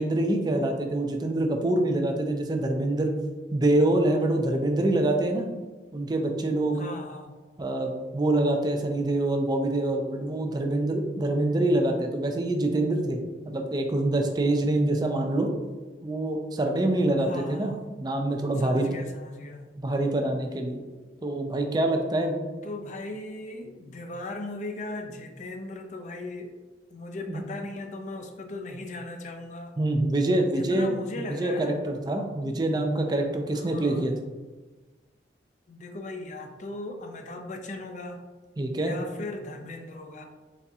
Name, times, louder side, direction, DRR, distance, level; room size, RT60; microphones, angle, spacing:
voice 1, 0.0-3.1 3.5-5.5 5.9-6.8 7.6-13.2 13.5-15.5 16.0-17.7 18.0-18.9 19.8-20.8 21.2-22.4 27.3-27.4 29.8-34.1 38.6-39.0, right 1 dB, 20° right, 4 dB, 0.4 m, -25 dB
voice 2, 6.7-7.3 10.6-10.7 17.2-17.9 18.6-19.7 22.6-26.5 26.9-29.7 30.6-31.8 33.5-34.2 35.7-38.2 38.8-40.3, left 2 dB, 40° left, 4 dB, 0.4 m, -38 dB
4.1 x 3.7 x 2.3 m, 1.3 s
head